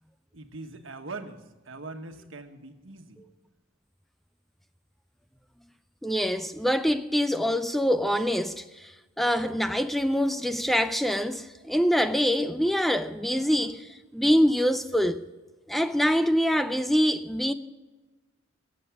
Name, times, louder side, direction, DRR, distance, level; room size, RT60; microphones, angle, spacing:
voice 1, 0.3-3.2, right 3 dB, 80° right, 1.4 m, -41 dB
voice 2, 6.0-8.9 9.2-15.2 15.7-17.5, equal, ahead, 0.4 m, -25 dB
21.5 x 8.2 x 6.1 m
head